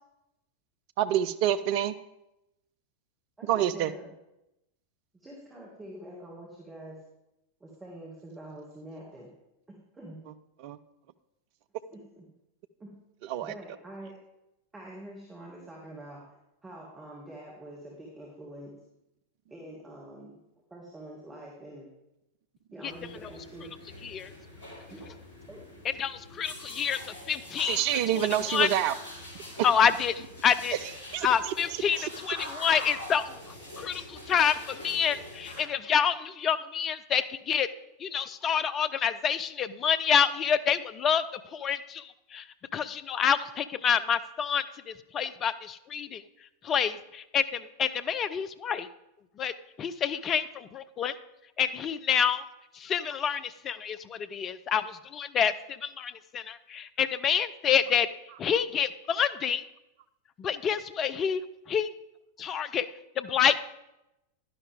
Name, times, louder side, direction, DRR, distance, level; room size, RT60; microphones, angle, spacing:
voice 1, 1.0-1.9 3.5-3.9 10.6-10.8 13.3-13.5 27.6-28.9 31.1-31.5 32.0-32.1, right 11 dB, 45° right, 12 dB, 0.5 m, -27 dB
voice 2, 3.4-4.1 5.1-7.0 7.6-9.3 9.7-10.2 11.9-12.2 12.8-12.9 13.4-14.2 14.7-16.3 16.6-18.7 19.5-20.4 20.7-21.9 22.7-23.7 24.9-25.0 25.5-25.6, right 1 dB, 15° right, -3 dB, 2.2 m, -45 dB
sound 1, 22.9-35.6, left 1 dB, 55° left, 4.0 m, -44 dB
voice 3, 26.0-27.8 28.5-28.7 29.6-30.7 31.2-33.4 33.8-37.7 38.0-41.2 41.5-42.4 42.7-46.2 46.6-48.9 49.4-49.5 49.8-51.1 51.6-52.4 52.7-58.1 58.4-59.6 60.4-61.4 61.7-61.9 62.4-62.9 63.2-63.6, left 8 dB, 30° left, 13 dB, 0.5 m, -28 dB
11.0 x 10.5 x 3.6 m, 0.90 s
figure-of-eight pair, 90°, 0 cm